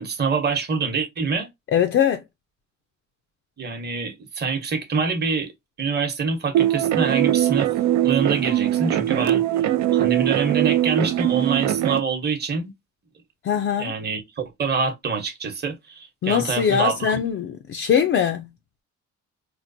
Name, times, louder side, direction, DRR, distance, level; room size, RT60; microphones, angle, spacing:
voice 1, 0.0-1.5 3.6-5.5 5.8-7.7 8.0-9.4 9.9-12.7 13.8-17.1, right 5 dB, 35° right, 1.0 m, -25 dB
voice 2, 1.7-2.2 13.4-13.9 16.2-18.5, left 8 dB, 45° left, 0.4 m, -21 dB
sound 1, 6.5-12.0, right 13 dB, 65° right, 0.4 m, -21 dB
4.4 x 2.1 x 2.6 m
cardioid pair, 90°, 30 cm